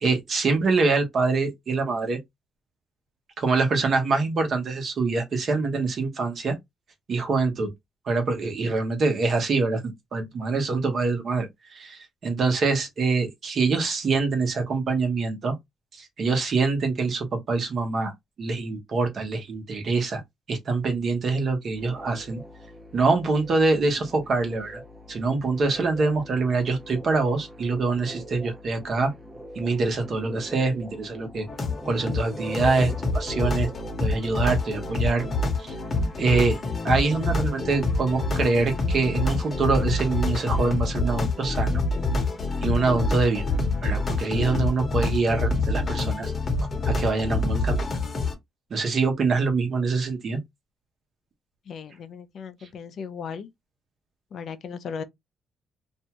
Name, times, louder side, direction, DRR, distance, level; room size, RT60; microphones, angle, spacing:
voice 1, 0.0-2.2 3.4-6.5 7.1-7.7 8.1-15.5 15.9-18.1 18.4-20.2 20.5-22.4 22.9-24.8 25.1-29.1 29.5-31.5 31.8-33.7 34.0-35.2 35.6-35.7 36.2-36.6 36.8-41.8 42.6-43.5 43.8-46.3 46.9-47.8 48.7-50.4, right 3 dB, 55° right, 1.0 m, -25 dB
sound 1, 21.8-33.9, equal, 20° right, 0.8 m, -42 dB
sound 2, 31.5-48.3, left 3 dB, 35° left, 1.0 m, -26 dB
voice 2, 51.7-53.5 54.3-55.0, left 6 dB, 60° left, 0.5 m, -36 dB
2.6 x 2.3 x 2.9 m
cardioid pair, 90°, 0 cm